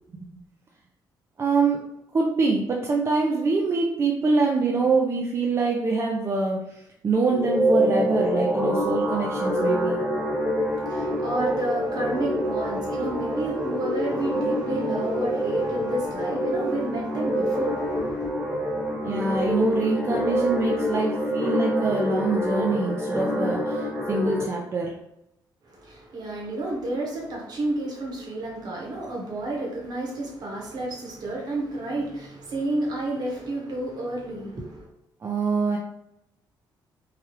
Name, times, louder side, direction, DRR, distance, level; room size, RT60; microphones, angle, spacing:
voice 1, 1.4-10.0 19.0-25.0 35.2-35.8, right 3 dB, 35° right, 0.4 m, -25 dB
sound 1, 7.3-24.4, equal, 5° right, 1.1 m, -26 dB
voice 2, 10.7-18.3 25.6-34.9, right 2 dB, 55° right, 1.1 m, -31 dB
3.2 x 2.3 x 2.9 m
cardioid pair, 100°, 8 cm